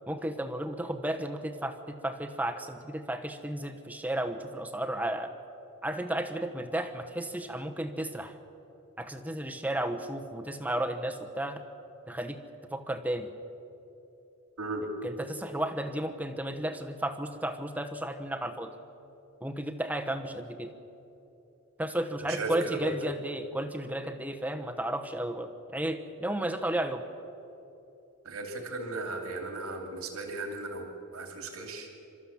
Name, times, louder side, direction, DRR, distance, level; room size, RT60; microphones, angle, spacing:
voice 1, 0.1-5.3 5.8-8.4 9.0-11.6 12.1-12.4 12.7-13.3 15.0-18.7 19.4-20.7 21.8-27.0, right 1 dB, 5° right, 5 dB, 1.1 m, -33 dB
voice 2, 14.6-14.9 22.2-23.1 28.2-31.9, right 2 dB, 80° right, 3 dB, 2.7 m, -36 dB
28.5 x 13.5 x 7.3 m, 2.9 s
head